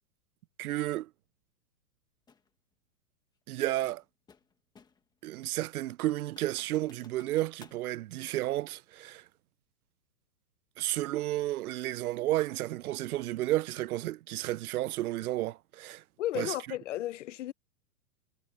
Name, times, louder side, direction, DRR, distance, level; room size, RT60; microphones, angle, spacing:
voice 1, 0.6-1.1 3.5-4.0 5.2-9.2 10.8-16.0 16.3-16.5, right 15 dB, 65° right, 0.6 m, -32 dB
sound 1, 2.3-2.5 3.8-5.1 5.5-5.6 6.1-7.9, left 5 dB, 10° left, 1.5 m, -58 dB
voice 2, 16.2-17.5, left 14 dB, 50° left, 0.7 m, -34 dB
hypercardioid pair, 160°, 48 cm